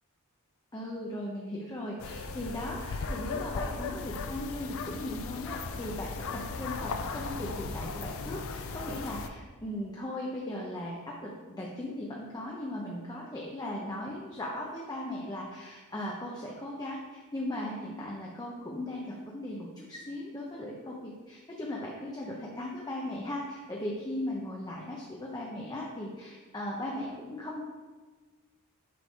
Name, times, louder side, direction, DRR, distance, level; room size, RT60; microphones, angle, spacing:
voice 1, 0.7-27.6, left 1 dB, 20° left, -3 dB, 0.7 m, -38 dB
sound 1, 2.0-9.3, left 4 dB, 65° left, 0.5 m, -37 dB
7.7 x 3.3 x 5.3 m, 1.3 s
head